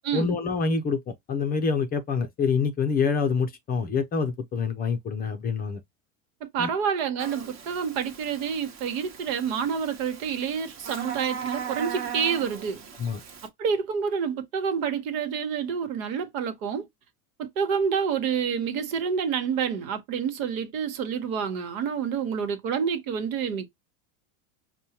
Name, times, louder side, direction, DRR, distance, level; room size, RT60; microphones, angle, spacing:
voice 1, 0.1-5.8 6.6-6.7 13.0-13.2, left 5 dB, 20° left, 0.5 m, -26 dB
voice 2, 6.5-12.8 13.6-16.9 17.4-23.7, right 7 dB, 70° right, 1.2 m, -28 dB
Buzz, 7.2-13.5, right 7 dB, 40° right, 1.1 m, -38 dB
5.4 x 2.2 x 2.9 m
supercardioid pair, 130°, 43 cm